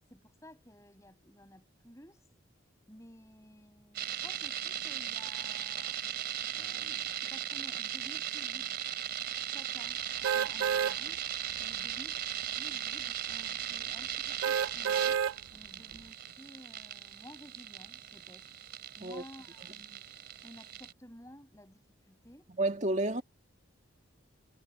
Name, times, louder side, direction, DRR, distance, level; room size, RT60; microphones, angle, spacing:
voice 1, 0.0-2.3 2.9-6.0 6.5-8.8 9.5-11.3 11.6-12.2 12.5-15.2 15.5-18.5 19.0-20.0 20.4-22.5, equal, 15° left, 7.9 m, -54 dB
sound 1, 3.9-20.9, right 10 dB, 55° right, 3.6 m, -38 dB
sound 2, 10.2-11.0 11.5-11.6 14.4-15.4 15.9-16.0, right 8 dB, 80° right, 0.4 m, -29 dB
voice 2, 22.6-23.2, right 2 dB, 35° right, 1.8 m, -30 dB
head